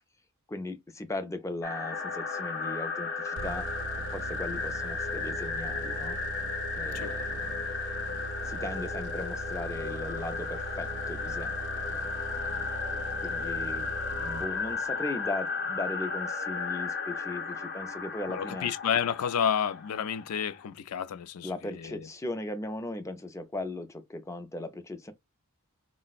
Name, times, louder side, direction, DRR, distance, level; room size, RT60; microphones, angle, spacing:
voice 1, 0.5-3.7 4.1-6.2 6.8-7.7 8.4-12.5 13.2-13.9 14.2-18.7 21.4-25.1, left 2 dB, 15° left, 0.4 m, -38 dB
sound 1, 1.6-20.7, left 4 dB, 50° left, 0.7 m, -34 dB
sound 2, 3.4-15.0, right 4 dB, 55° right, 0.4 m, -41 dB
voice 2, 18.3-22.0, left 8 dB, 80° left, 0.4 m, -30 dB
4.1 x 2.0 x 2.3 m
head